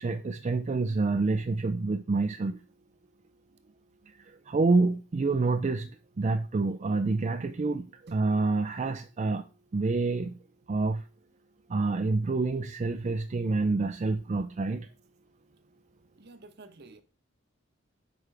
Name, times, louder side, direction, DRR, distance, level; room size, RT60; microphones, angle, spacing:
voice 1, 0.0-2.6 4.2-5.9 6.2-9.4 9.7-10.4 10.7-11.0 11.7-14.9, right 3 dB, 35° right, 0.4 m, -27 dB
voice 2, 16.2-17.0, right 2 dB, 55° right, 0.8 m, -49 dB
8.1 x 5.1 x 3.4 m
head